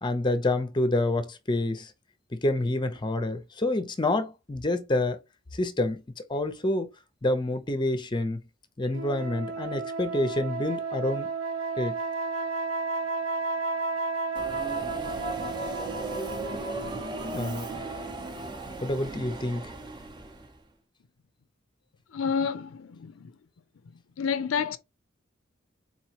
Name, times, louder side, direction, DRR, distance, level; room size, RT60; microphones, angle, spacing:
voice 1, 0.0-1.9 2.3-5.2 5.5-6.0 6.3-6.9 7.2-8.4 8.8-11.3 11.8-12.0 17.3-17.9 18.8-19.7, left 2 dB, 25° left, 0.6 m, -28 dB
sound 1, 8.9-18.6, right 3 dB, 85° right, 0.9 m, -33 dB
Subway metro underground, 14.3-20.6, right 3 dB, 25° right, 0.7 m, -36 dB
voice 2, 22.1-23.3 24.2-24.8, left 6 dB, 85° left, 0.4 m, -29 dB
4.2 x 3.0 x 2.8 m
head